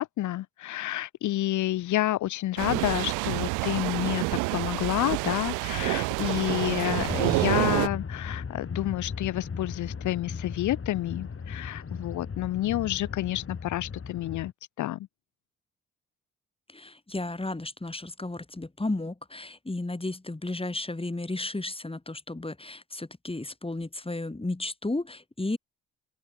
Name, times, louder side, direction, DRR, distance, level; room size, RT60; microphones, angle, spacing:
voice 1, 0.0-4.2 4.5-14.5 14.8-15.0, left 15 dB, 70° left, 1.0 m, -29 dB
sound 1, 2.6-7.9, right 30 dB, 80° right, 0.5 m, -28 dB
sound 2, 7.0-14.5, left 5 dB, 45° left, 6.7 m, -37 dB
voice 2, 16.7-25.6, left 2 dB, 15° left, 5.1 m, -33 dB
open air
hypercardioid pair, 45°, 31 cm